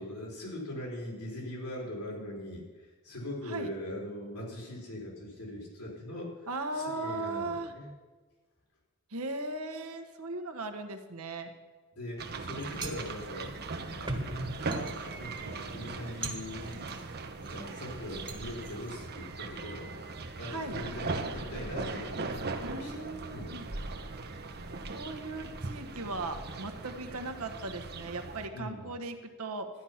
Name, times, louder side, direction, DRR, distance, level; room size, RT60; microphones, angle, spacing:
voice 1, 0.0-6.5 6.7-7.9 11.9-13.5 13.9-16.9 17.4-23.1 23.3-23.6 28.5-28.9, left 1 dB, 80° left, -3 dB, 4.3 m, -41 dB
voice 2, 6.5-7.7 9.1-11.5 20.4-20.8 22.6-23.6 24.9-29.7, right 2 dB, 70° right, 6 dB, 1.3 m, -38 dB
sound 1, 12.2-28.5, right 3 dB, 45° right, 0.9 m, -39 dB
sound 2, 12.6-17.6 18.0-19.0, right 2 dB, 20° right, 1.5 m, -41 dB
13.0 x 10.0 x 5.8 m, 1.3 s
head